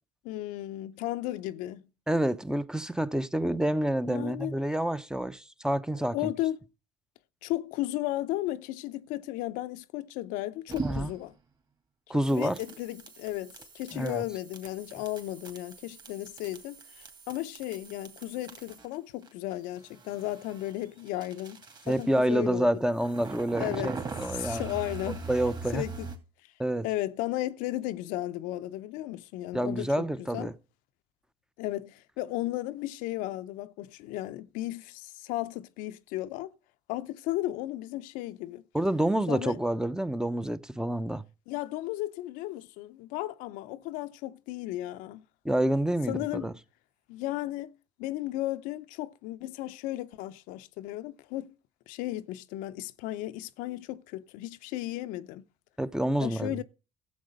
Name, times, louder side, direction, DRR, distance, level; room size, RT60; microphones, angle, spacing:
voice 1, 0.2-1.8 4.1-4.5 5.9-6.6 7.4-11.3 12.1-22.8 23.6-23.9 24.3-25.2 25.7-26.1 26.8-30.5 31.6-36.5 36.9-38.6 39.3-39.6 41.5-45.2 46.1-46.5 47.1-47.7 48.0-51.5 51.9-55.4 56.2-56.6, left 15 dB, 80° left, 0.7 m, -35 dB
voice 2, 2.1-6.3 10.8-11.1 12.1-12.6 13.9-14.3 21.9-24.7 25.3-25.8 26.6-26.9 29.5-30.5 38.7-41.2 45.4-46.5 55.8-56.6, right 1 dB, 5° right, 0.7 m, -28 dB
sound 1, 10.7-11.3 12.3-19.0 19.2-22.3 22.9-26.2, right 4 dB, 30° right, 2.7 m, -41 dB
13.0 x 7.7 x 5.2 m
supercardioid pair, 90°, 14 cm